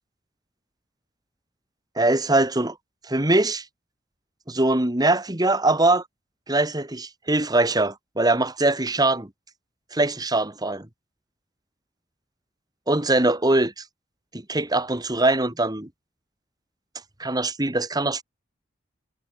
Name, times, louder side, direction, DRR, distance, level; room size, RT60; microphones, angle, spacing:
voice 1, 2.0-2.8 3.1-3.6 4.5-6.0 6.5-9.3 9.9-10.9 12.9-13.8 14.3-15.9 17.2-18.2, right 2 dB, 20° right, 2.1 m, -22 dB
head